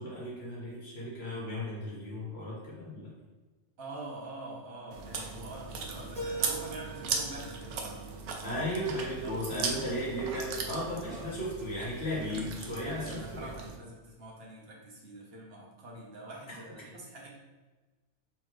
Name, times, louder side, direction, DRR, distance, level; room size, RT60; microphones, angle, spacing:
voice 1, 0.0-3.1 8.4-13.5 16.5-16.6, equal, 65° left, -5 dB, 1.6 m, -35 dB
voice 2, 3.8-8.0 9.2-9.9 11.0-11.3 12.8-17.3, right 1 dB, 60° right, -3 dB, 1.2 m, -45 dB
Chewing mastication, 4.9-13.8, right 5 dB, 80° right, 0.9 m, -38 dB
Keyboard (musical), 6.2-9.1, right 2 dB, 35° right, 1.0 m, -43 dB
4.2 x 3.4 x 3.0 m, 1.2 s
omnidirectional pair, 1.2 m